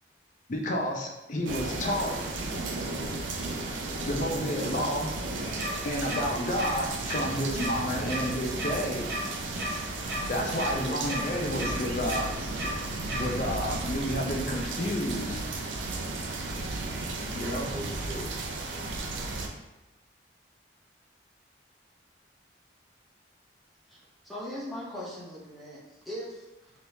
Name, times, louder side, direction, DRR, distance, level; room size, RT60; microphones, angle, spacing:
voice 1, 0.5-2.2 4.1-5.1 5.8-9.1 10.3-12.3 13.2-15.4 17.3-17.7, equal, 40° left, 1 dB, 0.5 m, -30 dB
sound 1, 1.5-19.5, right 2 dB, 90° right, 0.5 m, -34 dB
sound 2, 5.6-5.7 6.1-6.2 6.6-6.7 7.1-7.2 7.5-7.7 8.1-8.2 8.6-8.7 9.1-9.2 9.6-9.7 10.1-10.2 10.6-10.7 11.1-11.2 11.6-11.7 12.1-12.2 12.6-12.7 13.1-13.2, right 1 dB, 55° right, 0.8 m, -34 dB
voice 2, 10.7-11.0 17.1-18.9, equal, 20° right, 1 dB, 0.4 m, -42 dB
voice 3, 24.2-25.8 26.0-26.7, equal, ahead, -7 dB, 0.7 m, -39 dB
3.4 x 3.0 x 2.7 m, 1.0 s
head